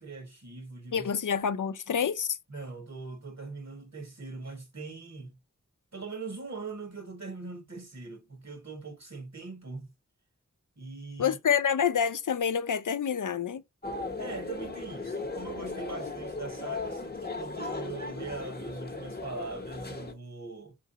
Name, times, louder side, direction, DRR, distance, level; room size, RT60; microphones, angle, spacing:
voice 1, 0.0-1.1 2.5-5.4 5.9-9.9 10.8-11.4 14.2-20.7, right 4 dB, 60° right, 1.8 m, -41 dB
voice 2, 0.9-2.4 11.2-13.6, left 7 dB, 80° left, 0.5 m, -27 dB
sound 1, 13.8-20.1, left 3 dB, 30° left, 0.8 m, -37 dB
4.7 x 3.8 x 2.8 m
wide cardioid pair, 50°, 31 cm